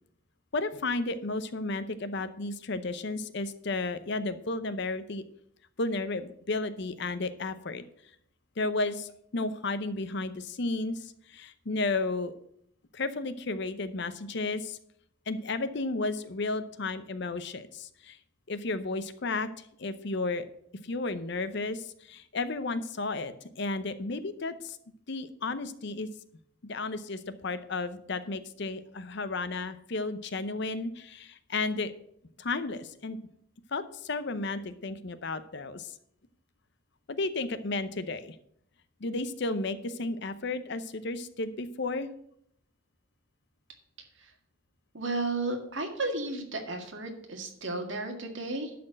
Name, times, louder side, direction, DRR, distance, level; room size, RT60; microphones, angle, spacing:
voice 1, 0.5-5.2 5.8-7.8 8.6-12.3 12.9-14.8 15.3-18.2 18.5-20.4 20.8-24.8 25.1-26.1 26.6-31.9 32.4-33.2 33.7-36.0 37.1-38.4 39.0-42.1, left 3 dB, 55° left, 12 dB, 0.7 m, -33 dB
voice 2, 44.9-48.7, right 2 dB, 60° right, 3 dB, 1.9 m, -33 dB
11.5 x 4.3 x 7.7 m, 0.71 s
head